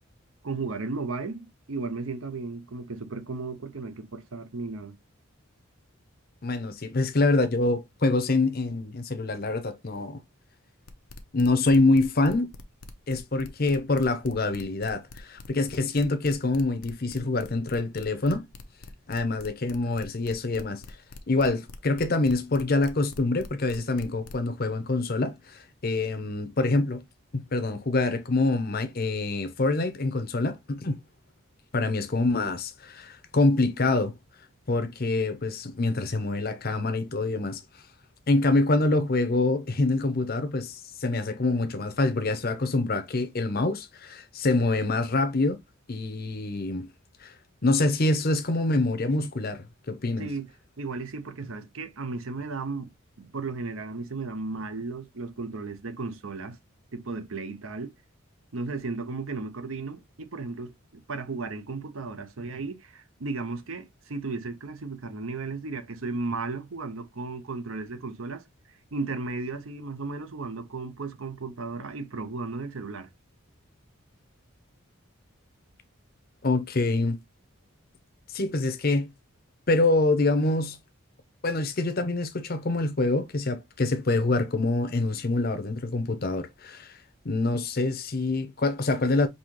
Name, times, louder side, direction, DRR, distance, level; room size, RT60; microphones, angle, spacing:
voice 1, 0.4-5.0 50.2-50.5 50.8-52.9 53.2-56.6 56.9-57.9 58.5-68.4 68.9-73.1, right 3 dB, 70° right, 0.8 m, -35 dB
voice 2, 6.4-10.2 11.3-12.5 13.1-18.4 19.1-20.8 21.3-27.0 27.3-31.0 31.7-34.2 34.7-37.6 38.3-45.6 45.9-46.9 47.2-47.3 47.6-50.3 76.4-77.2 78.3-79.1 79.7-80.8 81.4-87.0 87.2-89.3, left 2 dB, 45° left, 0.7 m, -25 dB
sound 1, 10.9-24.4, left 3 dB, 90° left, 0.7 m, -45 dB
5.4 x 2.9 x 2.9 m
head